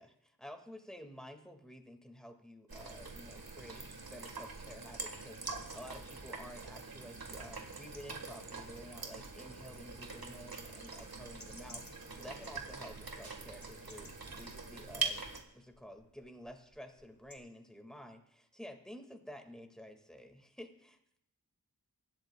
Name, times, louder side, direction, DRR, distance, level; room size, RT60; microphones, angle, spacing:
voice 1, 0.0-15.2 15.5-21.0, equal, ahead, 4 dB, 1.9 m, -51 dB
sound 1, 2.7-15.4, right 4 dB, 80° right, 1.6 m, -44 dB
sound 2, 9.9-17.4, left 1 dB, 50° left, 2.3 m, -62 dB
23.5 x 12.0 x 2.3 m, 0.75 s
wide cardioid pair, 40°, 35 cm